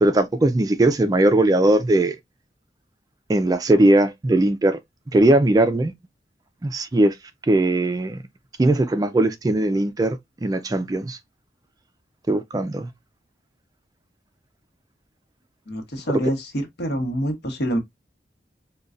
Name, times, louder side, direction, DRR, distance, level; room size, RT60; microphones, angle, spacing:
voice 1, 0.0-2.2 3.3-4.8 5.1-5.9 6.6-7.1 7.5-8.2 8.6-11.2 12.3-12.9 16.1-16.2, right 1 dB, 20° right, 0.3 m, -19 dB
voice 2, 15.7-17.8, equal, 65° left, 1.1 m, -26 dB
5.2 x 2.2 x 2.4 m
head